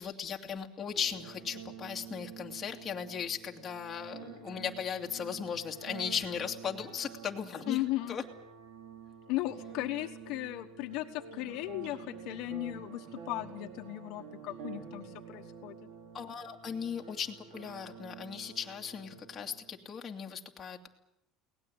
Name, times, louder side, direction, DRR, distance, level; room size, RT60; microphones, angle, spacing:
voice 1, 0.0-7.8 8.1-8.2 16.1-20.9, left 7 dB, 25° left, 1 dB, 2.4 m, -37 dB
sound 1, 0.9-19.9, right 6 dB, 80° right, 5.2 m, -49 dB
voice 2, 7.7-8.2 9.3-15.8, left 17 dB, 65° left, 6 dB, 1.3 m, -36 dB
23.0 x 18.5 x 8.9 m, 0.84 s
cardioid pair, 140°, 0 cm